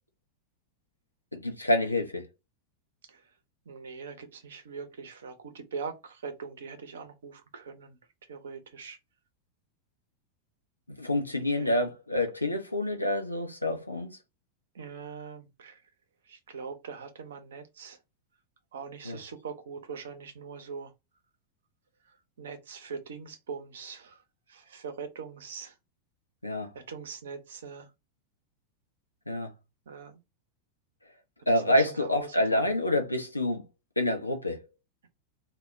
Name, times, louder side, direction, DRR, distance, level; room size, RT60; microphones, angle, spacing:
voice 1, 1.3-2.3 11.0-14.2 19.0-19.2 26.4-26.7 29.3-29.5 31.5-33.6 34.0-34.6, left 1 dB, 85° left, 0.4 m, -27 dB
voice 2, 3.7-8.0 8.3-9.0 11.5-11.7 14.7-15.7 16.3-18.0 18.7-20.9 22.4-24.1 24.5-25.7 26.7-27.9 29.9-30.2 31.7-32.6, right 5 dB, 65° right, 0.5 m, -42 dB
2.1 x 2.0 x 3.4 m
figure-of-eight pair, 90°, 0 cm